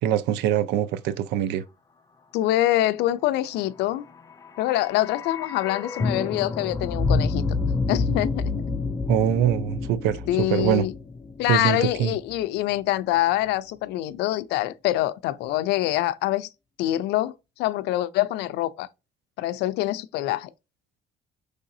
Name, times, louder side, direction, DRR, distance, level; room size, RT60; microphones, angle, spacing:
voice 1, 0.0-1.6 9.1-10.9 11.5-12.1, right 10 dB, 90° right, 0.5 m, -23 dB
voice 2, 2.3-4.0 4.6-7.4 7.9-8.6 10.3-10.9 11.4-16.5 16.8-17.3 17.6-18.9 19.4-20.5, left 15 dB, 85° left, 0.4 m, -25 dB
sound 1, 4.3-12.4 12.7-12.8, left 3 dB, 20° left, 0.5 m, -28 dB
4.7 x 3.4 x 2.7 m
cardioid pair, 110°, 17 cm